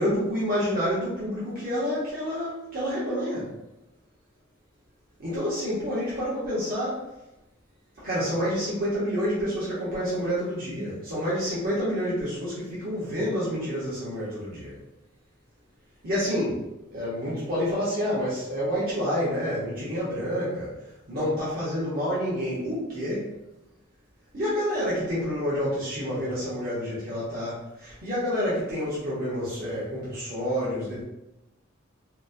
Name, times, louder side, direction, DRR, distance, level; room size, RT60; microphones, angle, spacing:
voice 1, 0.0-3.5 5.2-7.0 8.0-14.7 16.0-20.7 21.1-23.3 24.3-31.0, equal, 50° right, -9 dB, 1.0 m, -28 dB
4.0 x 2.1 x 2.6 m, 0.95 s
head